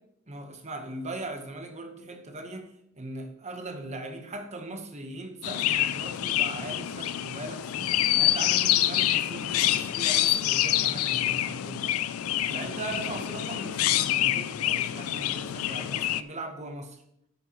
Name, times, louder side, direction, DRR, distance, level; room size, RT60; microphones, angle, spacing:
voice 1, 0.3-11.9 12.5-17.0, right 2 dB, 35° right, 1.1 m, -39 dB
Chirp tweet, 5.4-16.2, left 12 dB, 85° left, 0.4 m, -26 dB
9.8 x 9.4 x 3.0 m
head